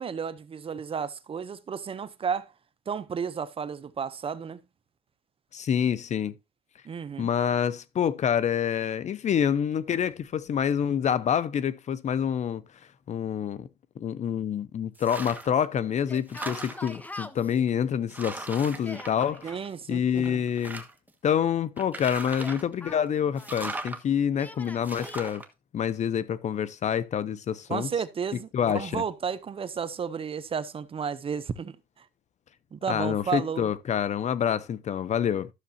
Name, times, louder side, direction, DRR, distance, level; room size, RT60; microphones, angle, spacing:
voice 1, 0.0-2.4 2.9-4.6 6.8-7.3 19.4-20.4 27.7-32.0 32.7-33.7, right 6 dB, 35° right, 0.7 m, -32 dB
voice 2, 5.5-6.3 7.2-12.6 13.1-13.7 14.0-19.6 19.9-20.8 21.2-25.4 25.7-27.9 28.5-29.0 32.9-35.5, left 8 dB, 45° left, 0.6 m, -27 dB
sound 1, 15.0-15.6 16.0-17.1 17.7-17.8 18.1-19.8 20.2-21.1 21.8-22.7 23.4-24.0 24.8-25.5, right 2 dB, 10° right, 1.3 m, -39 dB
Yell, 16.0-17.6 18.6-19.6 22.2-24.0 24.4-25.2, left 2 dB, 10° left, 0.8 m, -43 dB
13.0 x 6.7 x 2.8 m
cardioid pair, 110°, 17 cm